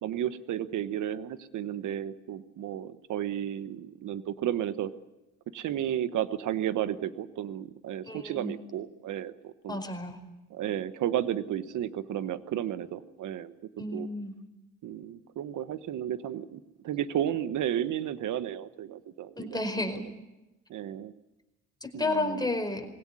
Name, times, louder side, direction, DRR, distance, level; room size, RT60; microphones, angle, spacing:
voice 1, 0.0-4.9 5.5-9.8 10.5-13.5 13.9-14.1 14.8-19.6 20.7-21.1 21.9-22.5, right 11 dB, 85° right, 13 dB, 1.2 m, -33 dB
voice 2, 8.1-8.6 9.7-10.2 13.8-14.3 19.4-20.0 21.8-22.9, left 2 dB, 15° left, 5 dB, 4.9 m, -32 dB
21.5 x 17.5 x 9.8 m, 1.0 s
cardioid pair, 80°, 30 cm